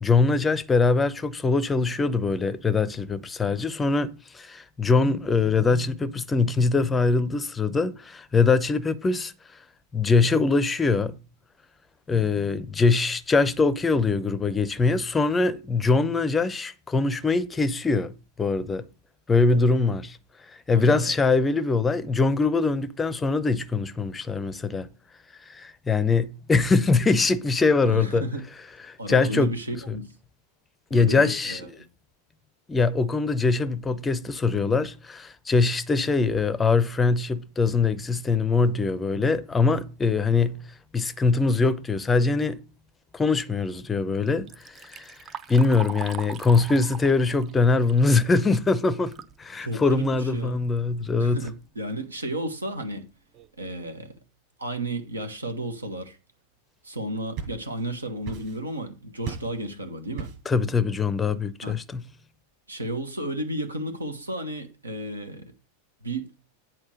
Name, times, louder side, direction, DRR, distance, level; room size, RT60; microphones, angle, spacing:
voice 1, 0.0-9.3 9.9-11.2 12.1-18.1 18.4-18.9 19.3-20.2 20.5-24.9 25.5-28.2 28.9-29.5 29.9-30.0 30.9-31.6 32.7-40.6 40.9-42.6 43.1-45.2 45.5-49.1 49.4-51.4 60.5-62.0, left 4 dB, 15° left, 0.6 m, -23 dB
voice 2, 20.7-21.1 27.8-28.5 29.0-30.1 30.9-31.8 49.6-50.6 51.2-53.1 53.6-54.1 54.6-56.2 56.8-60.3 61.6-61.8 62.7-65.5 66.0-66.3, right 1 dB, 80° right, 1.2 m, -33 dB
Liquid, 44.3-49.4 49.8-49.9 50.8-50.9 51.3-51.6 52.2-52.3 52.8-52.9 53.3-53.6, right 7 dB, 30° right, 0.5 m, -41 dB
sound 1, 57.0-57.9 58.2-58.8 59.2-59.6 60.2-60.6, right 6 dB, 50° right, 5.5 m, -37 dB
8.6 x 4.4 x 6.2 m
figure-of-eight pair, 90°, 0 cm